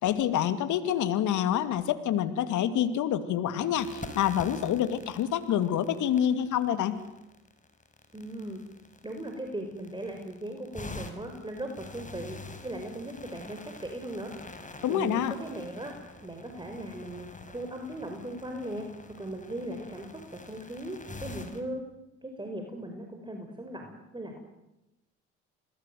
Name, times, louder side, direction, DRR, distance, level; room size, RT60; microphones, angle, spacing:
voice 1, 0.0-7.0 14.8-15.3, left 10 dB, 65° left, 11 dB, 2.5 m, -27 dB
sound 1, 3.7-21.6, left 2 dB, 25° left, 5.7 m, -46 dB
voice 2, 8.1-8.6 9.0-12.4 12.6-14.3 14.9-15.9 16.2-21.8 22.2-24.4, right 1 dB, 15° right, 4 dB, 5.3 m, -38 dB
28.5 x 20.5 x 9.4 m, 0.93 s
hypercardioid pair, 60°, 32 cm